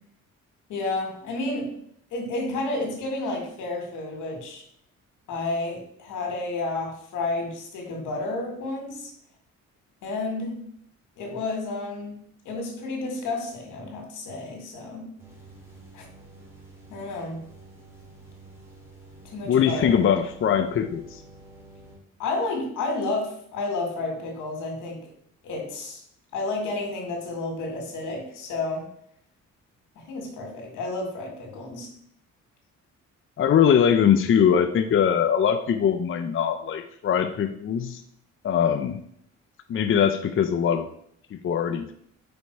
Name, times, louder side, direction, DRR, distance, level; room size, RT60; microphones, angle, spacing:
voice 1, 0.7-1.8 2.1-4.6 5.3-9.1 10.0-10.6 11.2-12.2 12.5-15.1 15.9-16.1 16.9-17.4 19.2-20.1 22.2-25.1 25.4-26.0 26.3-28.8 30.0-31.9, left 2 dB, 90° left, 2 dB, 2.0 m, -31 dB
sound 1, 15.2-22.0, right 2 dB, 10° right, 2.6 m, -49 dB
voice 2, 19.4-21.2 33.4-38.0 38.4-39.0 39.7-40.9 41.3-41.9, left 8 dB, 45° left, 8 dB, 0.6 m, -22 dB
5.3 x 5.2 x 4.5 m, 0.67 s
cardioid pair, 90°, 30 cm